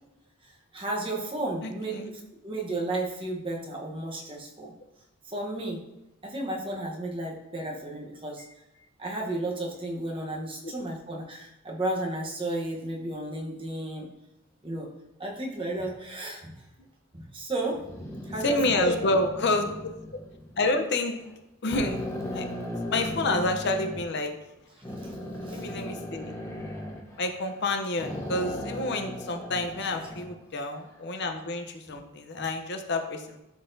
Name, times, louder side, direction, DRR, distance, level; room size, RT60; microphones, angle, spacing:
voice 1, 0.4-4.7 5.2-5.8 6.2-8.4 9.0-14.1 14.6-14.9 15.2-16.6 17.1-18.9 22.5-22.6 24.7-25.8 29.8-30.0 32.4-32.5, right 2 dB, 25° right, -1 dB, 1.0 m, -33 dB
voice 2, 1.6-2.1 18.4-19.9 20.6-21.2 21.6-22.0 22.3-22.4 22.9-24.3 25.5-26.4 27.2-33.4, left 2 dB, 50° left, 6 dB, 0.7 m, -28 dB
sound 1, 17.7-20.6 21.2-21.3 21.7-24.0 24.8-27.7 28.0-30.3, left 1 dB, 15° left, 0.8 m, -37 dB
11.5 x 4.0 x 2.7 m, 0.91 s
head